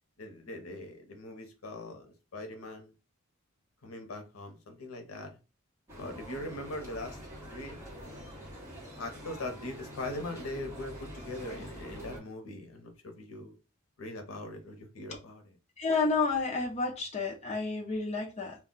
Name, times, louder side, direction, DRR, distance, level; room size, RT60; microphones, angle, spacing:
voice 1, 0.2-2.9 3.8-5.4 6.0-7.2 7.5-8.3 9.0-13.5 14.0-15.6, left 2 dB, 90° left, 0.7 m, -41 dB
sound 1, 5.9-12.2, equal, 15° right, 0.9 m, -45 dB
voice 2, 15.8-18.6, left 4 dB, 30° left, 0.5 m, -30 dB
2.2 x 2.2 x 3.7 m
head